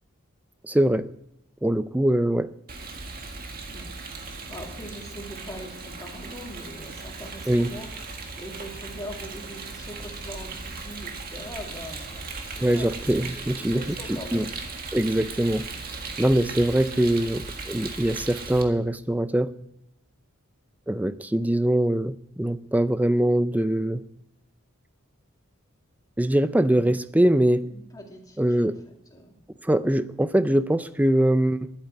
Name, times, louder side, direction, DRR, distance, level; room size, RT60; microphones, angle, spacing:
voice 1, 0.6-1.1 1.6-2.5 7.5-7.7 12.6-14.4 14.9-15.7 16.2-19.5 20.9-24.0 26.2-27.7 28.4-28.8 29.6-31.7, right 1 dB, 5° right, 15 dB, 0.4 m, -23 dB
Rain, 2.7-18.6, right 3 dB, 45° right, 1.7 m, -37 dB
voice 2, 4.5-13.0 13.5-14.6 27.7-29.4, equal, 15° left, 1 dB, 2.3 m, -42 dB
11.5 x 8.8 x 8.9 m, 0.86 s
head